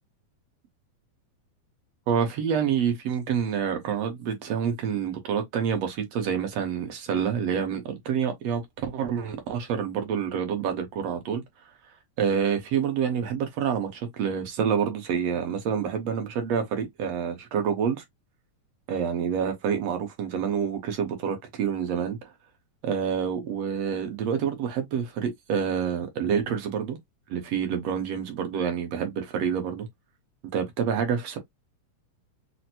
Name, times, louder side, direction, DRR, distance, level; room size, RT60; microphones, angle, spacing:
voice 1, 2.1-11.4 12.2-18.0 18.9-22.3 22.8-27.0 27.3-29.9 30.5-31.4, right 7 dB, 65° right, 1.8 m, -27 dB
6.0 x 2.0 x 2.7 m
omnidirectional pair, 3.6 m